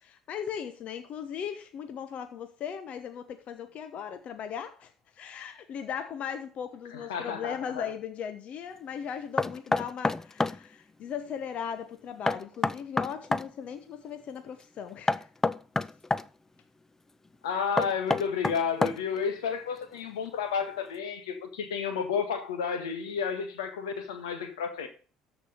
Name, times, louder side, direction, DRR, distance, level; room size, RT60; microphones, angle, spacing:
voice 1, 0.0-15.3, left 8 dB, 55° left, 1.1 m, -38 dB
voice 2, 6.9-7.9 17.4-24.9, left 6 dB, 85° left, 1.6 m, -31 dB
Knock, 9.4-10.6 12.3-13.5 15.1-16.3 17.8-19.2, left 3 dB, 15° left, 0.5 m, -27 dB
13.5 x 5.1 x 5.2 m
hypercardioid pair, 65°, 3 cm